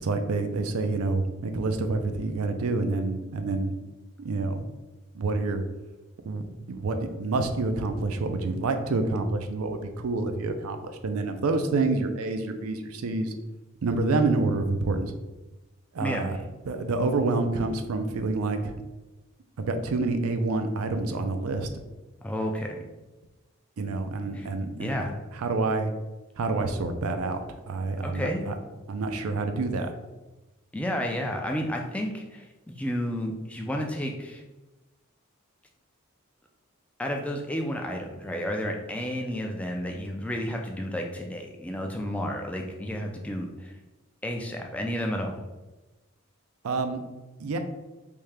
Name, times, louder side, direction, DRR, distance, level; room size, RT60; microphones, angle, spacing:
voice 1, 0.0-3.7 4.2-4.7 5.1-5.6 6.3-6.4 6.7-13.3 13.8-15.1 15.9-16.4 16.6-18.7 19.6-21.7 23.8-24.9 25.4-25.9 26.4-28.5 28.9-29.9 46.6-47.0 47.4-47.6, right 3 dB, 80° right, 7 dB, 0.4 m, -27 dB
voice 2, 16.0-16.4 22.2-22.7 24.3-24.5 24.8-25.2 28.0-28.4 30.7-34.4 37.0-43.7 44.2-45.4, equal, 5° left, 1 dB, 0.3 m, -31 dB
3.5 x 2.7 x 3.3 m, 1.1 s
head